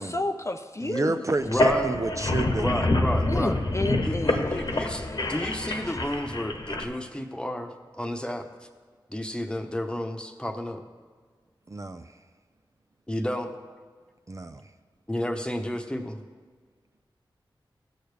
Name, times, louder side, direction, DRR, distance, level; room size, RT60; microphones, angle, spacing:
voice 1, 0.0-1.2 3.3-6.1, left 2 dB, 30° left, 6 dB, 0.5 m, -32 dB
voice 2, 0.8-2.8 11.7-12.1 14.3-14.6, right 2 dB, 35° right, 8 dB, 0.5 m, -29 dB
sound 1, 1.4-6.8, left 2 dB, 55° left, 1.1 m, -27 dB
voice 3, 1.4-1.9 2.6-3.6 4.0-8.5 9.1-10.8 13.1-13.5 15.1-16.2, left 1 dB, 10° left, 4 dB, 1.0 m, -31 dB
15.5 x 6.5 x 3.4 m, 1.5 s
cardioid pair, 45°, 9 cm